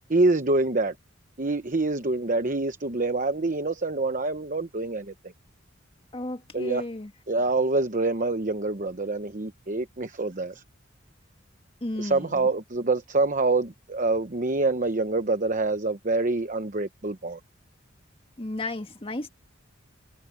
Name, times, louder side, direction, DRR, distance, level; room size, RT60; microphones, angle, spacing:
voice 1, 0.1-0.9 1.4-5.1 6.5-6.8 7.3-10.6 12.0-17.4, right 3 dB, 40° right, 1.0 m, -26 dB
voice 2, 6.1-7.1 11.8-12.5 18.4-19.3, left 1 dB, 30° left, 1.8 m, -33 dB
head